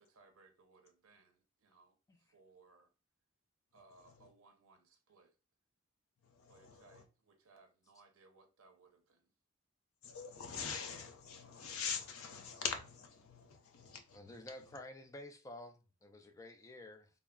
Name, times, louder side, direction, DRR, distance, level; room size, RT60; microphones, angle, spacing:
voice 1, 0.0-2.9 3.7-5.4 6.5-9.3, right 3 dB, 75° right, 0.6 m, -65 dB
voice 2, 4.0-4.3 6.2-7.0 10.0-14.8, left 6 dB, 75° left, 0.5 m, -44 dB
voice 3, 14.1-17.1, left 1 dB, 15° left, 0.3 m, -51 dB
3.5 x 2.0 x 2.2 m
head